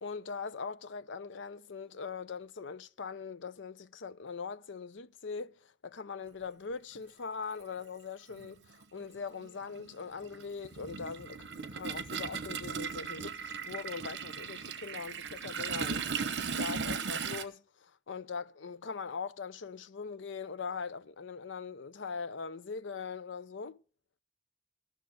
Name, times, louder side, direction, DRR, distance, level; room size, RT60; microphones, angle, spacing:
voice 1, 0.0-16.0 16.6-23.8, left 5 dB, 85° left, 0.6 m, -41 dB
Toilet flush, 7.0-7.1 8.3-8.5 8.8-17.4, right 6 dB, 65° right, 0.9 m, -37 dB
13.0 x 6.6 x 7.5 m
head